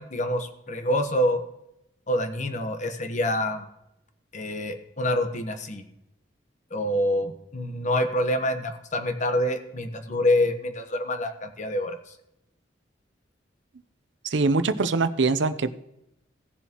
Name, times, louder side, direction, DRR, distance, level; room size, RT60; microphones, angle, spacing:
voice 1, 0.0-1.4 2.1-3.7 4.3-5.8 6.7-12.0, left 1 dB, 40° left, 7 dB, 1.1 m, -26 dB
voice 2, 14.2-15.8, right 3 dB, 85° right, 12 dB, 0.7 m, -23 dB
17.5 x 7.1 x 3.0 m, 0.84 s
head